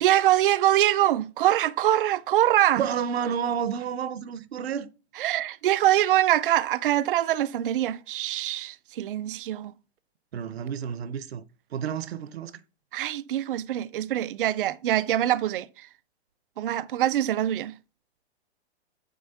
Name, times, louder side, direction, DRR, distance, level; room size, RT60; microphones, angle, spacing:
voice 1, 0.0-2.9 5.2-9.7 12.9-15.9 16.6-17.7, right 13 dB, 55° right, 0.4 m, -24 dB
voice 2, 2.8-4.9 10.3-11.4 11.7-12.6, right 8 dB, 70° right, 0.8 m, -30 dB
9.2 x 3.5 x 5.6 m
hypercardioid pair, 165°, 33 cm